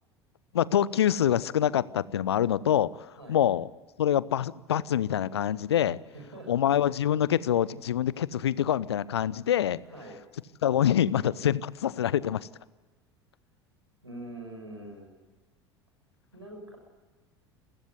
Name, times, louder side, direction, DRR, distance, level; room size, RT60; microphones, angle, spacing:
voice 1, 0.5-3.7 4.0-6.0 6.5-9.8 10.6-12.5, left 10 dB, 70° left, 21 dB, 0.7 m, -25 dB
voice 2, 6.1-6.5 9.9-10.2 14.0-15.1 16.3-16.8, right 1 dB, 85° right, 2 dB, 6.2 m, -43 dB
27.5 x 15.5 x 9.5 m, 1.2 s
figure-of-eight pair, 75°, 14 cm